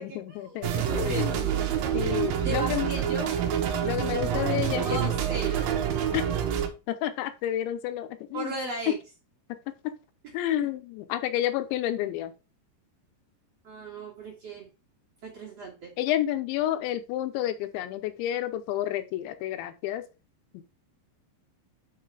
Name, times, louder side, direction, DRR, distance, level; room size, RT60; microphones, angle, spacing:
voice 1, 0.0-1.5 1.9-3.0 3.8-5.1 6.1-6.3 6.9-8.6 8.9-9.0 9.8-10.0 10.3-12.3 16.0-20.1 20.5-20.6, left 12 dB, 80° left, 10 dB, 3.0 m, -30 dB
sound 1, 0.6-6.7, right 9 dB, 65° right, 2.4 m, -27 dB
voice 2, 0.9-1.4 2.4-3.3 4.1-5.8 8.3-8.9 13.6-14.7 15.2-15.9, right 2 dB, 45° right, -3 dB, 2.3 m, -36 dB
6.3 x 5.8 x 4.8 m, 0.30 s
omnidirectional pair, 5.3 m